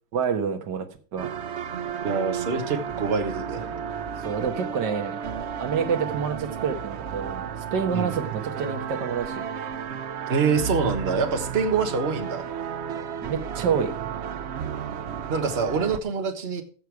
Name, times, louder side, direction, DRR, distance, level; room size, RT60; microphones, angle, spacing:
voice 1, 0.1-0.9 1.1-1.3 4.2-5.2 5.6-9.4 13.2-13.9, right 6 dB, 60° right, 5 dB, 1.9 m, -27 dB
sound 1, 1.2-16.0, right 7 dB, 85° right, 0.6 m, -33 dB
voice 2, 2.0-3.8 7.9-8.1 10.3-12.4 15.3-16.6, right 5 dB, 35° right, 6 dB, 1.4 m, -25 dB
15.5 x 6.8 x 4.7 m, 0.41 s
omnidirectional pair, 2.1 m